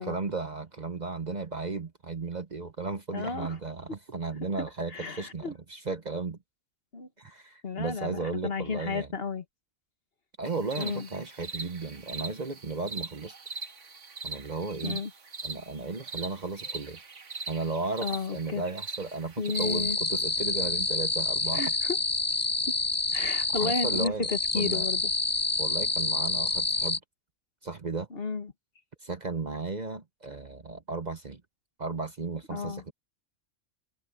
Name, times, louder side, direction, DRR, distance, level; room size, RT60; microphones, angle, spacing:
voice 1, 0.0-6.4 7.2-9.1 10.4-13.3 14.2-15.0 15.4-17.0 17.5-21.6 23.6-24.3 24.5-24.8 25.6-27.0 27.6-28.1 29.0-31.4 31.8-32.9, right 3 dB, 40° right, 1.0 m, -35 dB
voice 2, 3.1-3.6 4.6-5.5 6.9-7.1 7.6-9.4 10.8-11.1 14.8-15.1 18.0-18.6 19.4-20.0 21.5-22.0 23.1-25.1 28.1-28.5 32.5-32.8, left 4 dB, 50° left, 1.7 m, -33 dB
sound 1, 10.5-19.9, right 3 dB, 75° right, 2.0 m, -41 dB
sound 2, 19.5-27.0, left 3 dB, 20° left, 0.6 m, -28 dB
omnidirectional pair, 1.3 m